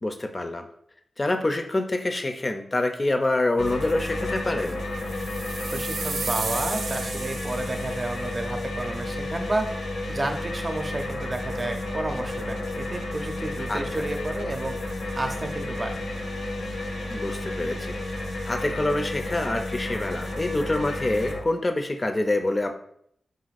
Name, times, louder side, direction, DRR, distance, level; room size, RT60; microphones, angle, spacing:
voice 1, 0.0-0.7 1.2-4.8 13.7-14.0 17.1-18.2 18.4-22.7, left 2 dB, 35° left, 6 dB, 0.5 m, -26 dB
sound 1, 3.6-21.4, left 1 dB, 85° left, 0.7 m, -32 dB
sound 2, 5.0-8.2, right 4 dB, 80° right, 0.4 m, -34 dB
voice 2, 5.7-16.0, right 2 dB, 35° right, 5 dB, 0.7 m, -31 dB
4.0 x 2.5 x 4.1 m, 0.69 s
cardioid pair, 50°, 0 cm